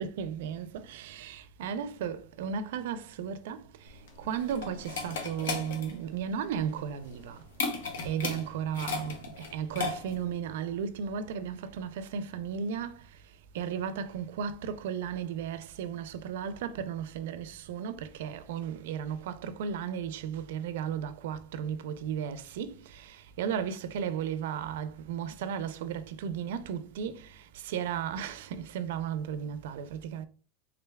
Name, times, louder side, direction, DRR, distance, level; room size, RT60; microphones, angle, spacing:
voice 1, 0.0-7.4 8.0-13.1 13.5-30.3, right 8 dB, 80° right, 0.4 m, -35 dB
sound 1, 3.9-10.3, left 4 dB, 90° left, 0.8 m, -36 dB
3.6 x 3.3 x 2.2 m
supercardioid pair, 120°, 0 cm